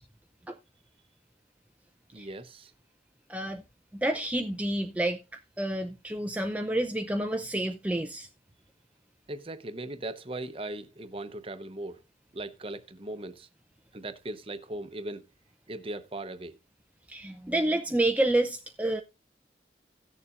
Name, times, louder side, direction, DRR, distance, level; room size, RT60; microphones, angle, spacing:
voice 1, 2.1-2.7 9.3-12.0 12.3-13.5 13.9-15.2 15.7-16.5, right 2 dB, 30° right, 0.8 m, -38 dB
voice 2, 3.3-3.6 3.9-5.2 5.6-8.3 17.1-19.0, right 1 dB, 10° right, 0.5 m, -29 dB
17.5 x 6.9 x 2.4 m
head